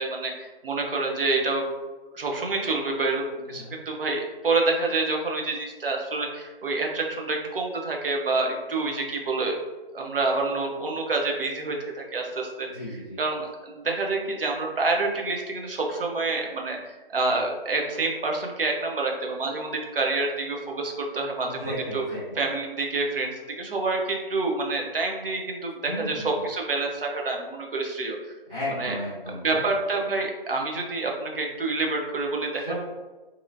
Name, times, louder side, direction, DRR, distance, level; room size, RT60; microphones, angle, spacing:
voice 1, 0.0-1.6 2.1-9.5 9.9-12.7 13.2-22.0 22.4-23.3 23.6-28.2 28.7-29.0 29.3-32.7, right 3 dB, 70° right, 1 dB, 0.7 m, -27 dB
voice 2, 12.7-13.2 21.4-22.4 25.9-26.4 28.5-29.6 32.5-32.7, left 1 dB, 5° right, -17 dB, 0.4 m, -34 dB
2.7 x 2.6 x 2.6 m, 1.2 s
figure-of-eight pair, 140°, 29 cm